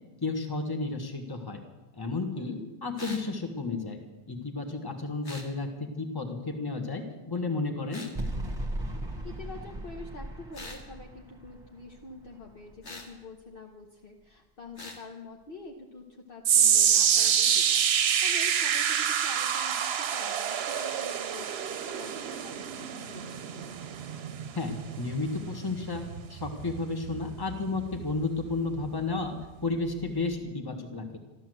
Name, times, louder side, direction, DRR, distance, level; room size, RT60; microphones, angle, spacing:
voice 1, 0.2-1.6 1.9-4.0 4.3-5.7 6.0-8.0 24.5-29.4 29.6-31.2, left 3 dB, 20° left, 5 dB, 1.5 m, -32 dB
voice 2, 2.3-2.7 9.2-23.8, left 3 dB, 55° left, 1 dB, 1.4 m, -46 dB
sound 1, 3.0-3.3 5.2-5.5 7.9-8.1 10.5-10.8 12.8-13.1 14.8-15.0 17.1-17.4, left 2 dB, 90° left, 2.3 m, -43 dB
sound 2, 8.2-13.3, right 1 dB, 25° right, 1.6 m, -38 dB
sound 3, 16.4-28.8 29.1-29.4 30.1-30.2, right 8 dB, 70° right, 0.9 m, -27 dB
13.5 x 12.5 x 7.8 m, 1.1 s
omnidirectional pair, 1.1 m